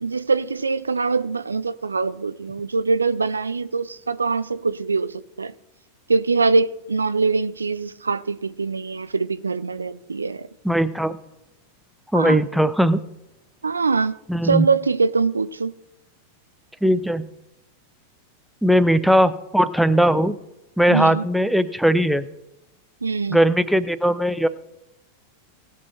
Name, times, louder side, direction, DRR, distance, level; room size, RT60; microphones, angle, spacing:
voice 1, 0.0-5.5 6.1-10.4 12.1-12.4 13.6-14.1 14.4-15.7 20.9-21.2 23.0-23.4, right 4 dB, 75° right, 0.4 m, -23 dB
voice 2, 10.6-11.1 12.1-13.0 14.3-14.7 16.8-17.3 18.6-20.4 20.8-22.3 23.3-24.5, equal, ahead, 0.6 m, -19 dB
18.5 x 6.2 x 4.3 m
figure-of-eight pair, 90°, 0 cm